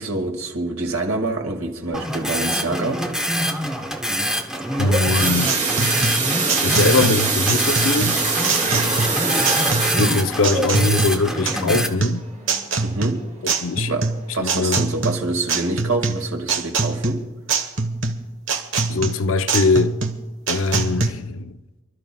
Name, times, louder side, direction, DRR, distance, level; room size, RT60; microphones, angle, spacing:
voice 1, 0.0-3.5 12.8-13.3 13.9-17.3, right 2 dB, 85° right, 2.1 m, -26 dB
sound 1, 1.9-11.9, equal, 5° right, 1.0 m, -25 dB
sound 2, 4.5-13.2 13.6-13.9 14.2-14.3 14.7-14.8, right 4 dB, 35° right, 2.3 m, -25 dB
voice 2, 4.8-5.6 6.6-8.2 9.9-12.3 13.4-13.9 14.4-14.8 18.9-20.0 20.5-21.6, left 3 dB, 70° left, 0.6 m, -21 dB
sound 3, 5.1-21.1, right 4 dB, 60° right, 1.2 m, -24 dB
29.5 x 12.5 x 2.3 m
head